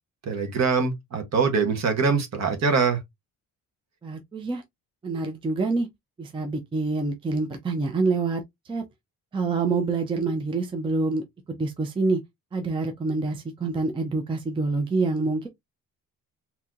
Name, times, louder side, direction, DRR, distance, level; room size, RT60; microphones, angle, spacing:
voice 1, 0.2-3.0, right 5 dB, 50° right, 1.1 m, -23 dB
voice 2, 4.0-4.6 5.0-5.9 6.2-8.8 9.3-12.2 12.5-15.5, right 3 dB, 15° right, 0.5 m, -26 dB
4.1 x 2.8 x 2.4 m
cardioid pair, 180°, 35 cm